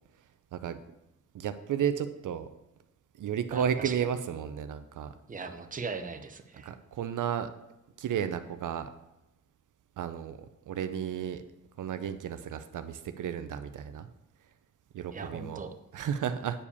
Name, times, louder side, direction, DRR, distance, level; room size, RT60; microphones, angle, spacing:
voice 1, 1.3-2.5 3.2-5.1 6.6-7.5 8.0-8.9 10.0-11.4 11.8-14.1 14.9-15.6 15.9-16.6, right 8 dB, 70° right, 10 dB, 0.6 m, -33 dB
voice 2, 3.5-4.0 5.3-6.7 15.1-15.7, right 4 dB, 25° right, 6 dB, 0.7 m, -39 dB
8.5 x 4.9 x 6.9 m, 0.96 s
wide cardioid pair, 150°, 32 cm